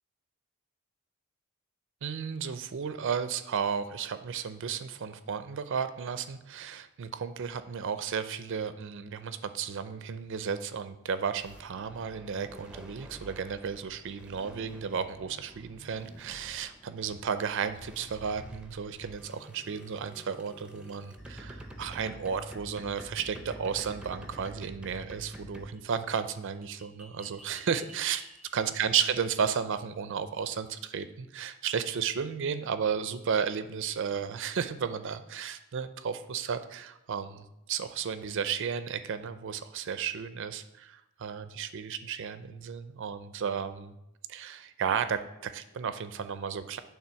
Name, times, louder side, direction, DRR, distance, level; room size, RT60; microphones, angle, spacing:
voice 1, 2.0-28.2 28.5-43.9 44.3-46.8, right 7 dB, 60° right, 11 dB, 0.5 m, -33 dB
sound 1, 11.4-25.8 26.5-28.8, right 1 dB, 5° right, 0.6 m, -48 dB
8.7 x 3.7 x 5.7 m, 0.87 s
head